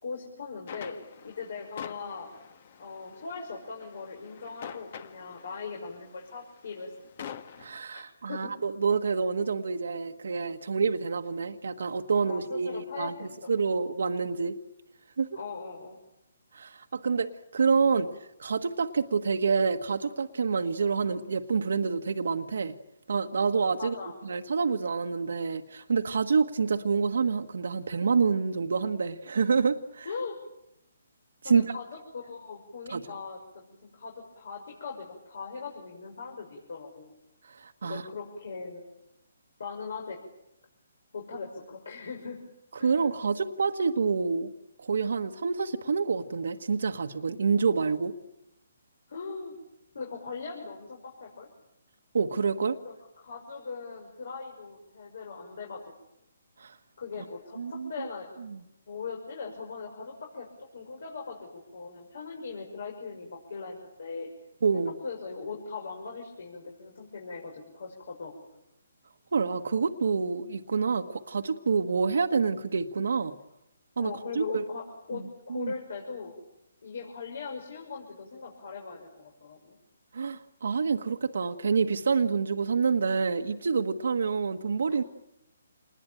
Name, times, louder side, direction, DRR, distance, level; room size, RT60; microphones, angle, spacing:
voice 1, 0.0-1.0 1.2-2.3 2.8-6.9 7.9-8.0 8.3-8.5 12.3-13.5 15.3-16.0 23.8-24.1 30.0-30.4 31.4-37.1 37.8-38.9 39.6-40.2 41.1-42.4 42.8-43.1 49.1-49.6 49.9-51.5 52.8-55.8 57.0-58.6 58.9-60.5 60.7-64.3 65.0-68.3 74.0-76.3 76.8-79.8, left 4 dB, 65° left, 1 dB, 5.9 m, -40 dB
sound 1, 0.7-7.8, left 8 dB, 45° left, 1.9 m, -46 dB
voice 2, 7.6-14.5 15.2-15.4 16.5-18.1 18.4-22.7 23.1-23.9 24.2-30.1 31.4-31.6 32.9-33.0 37.5-38.0 42.7-44.5 44.8-48.1 52.1-52.8 56.6-56.8 57.6-57.9 64.6-64.9 69.3-73.3 74.0-74.6 75.5-75.7 80.1-85.0, right 5 dB, 75° right, 6 dB, 1.4 m, -27 dB
28.0 x 20.5 x 9.0 m, 0.86 s
hypercardioid pair, 155°, 0 cm